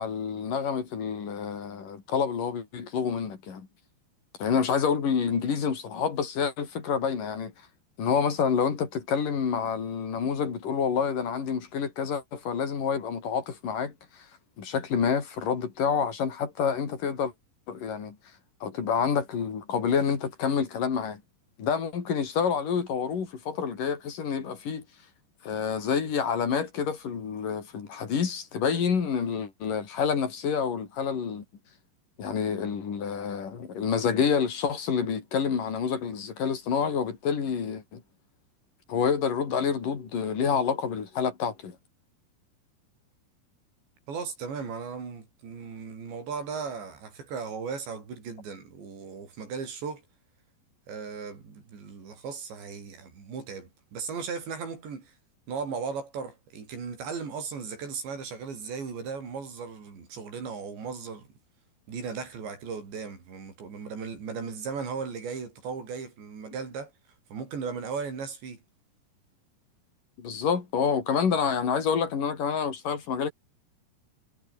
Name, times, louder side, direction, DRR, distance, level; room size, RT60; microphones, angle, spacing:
voice 1, 0.0-3.7 4.4-7.5 8.0-14.3 14.6-17.3 17.7-18.2 18.6-21.2 21.6-24.8 25.4-31.4 32.2-38.0 38.9-41.8 70.2-73.3, left 6 dB, 50° left, 5.3 m, -28 dB
voice 2, 44.1-50.0 50.9-55.1 55.5-61.3 61.9-66.9 67.3-68.6, right 5 dB, 80° right, 8.4 m, -37 dB
omnidirectional pair, 5.0 m